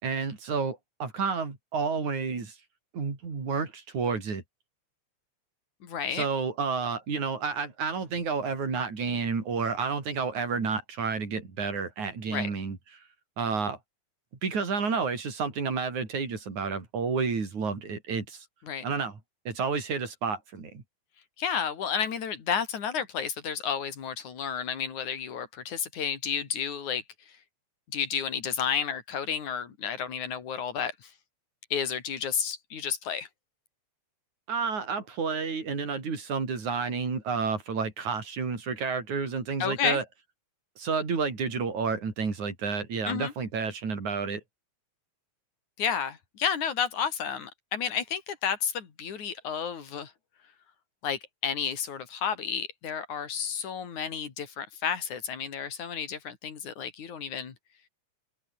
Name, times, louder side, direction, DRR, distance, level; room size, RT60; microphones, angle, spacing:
voice 1, 0.0-2.6 2.9-4.4 6.1-13.0 13.4-13.8 14.4-18.5 18.8-19.2 19.5-20.8 34.5-40.0 40.8-44.4, right 5 dB, 75° right, 6.3 m, -30 dB
voice 2, 5.8-6.3 12.3-12.5 18.6-18.8 21.4-27.0 27.9-31.1 31.7-33.3 39.6-40.0 43.1-43.3 45.8-50.1 51.0-57.5, left 7 dB, 80° left, 4.4 m, -31 dB
open air
omnidirectional pair, 3.4 m